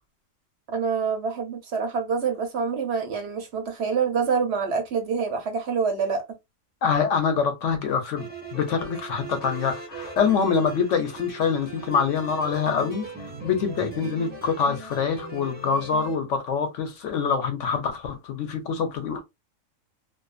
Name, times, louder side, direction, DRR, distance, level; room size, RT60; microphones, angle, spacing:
voice 1, 0.7-6.2, right 5 dB, 60° right, 0.8 m, -26 dB
voice 2, 6.8-13.0 13.4-19.2, left 6 dB, 70° left, 1.0 m, -25 dB
sound 1, 8.2-16.2, right 3 dB, 10° right, 0.5 m, -39 dB
2.5 x 2.4 x 2.3 m
omnidirectional pair, 1.3 m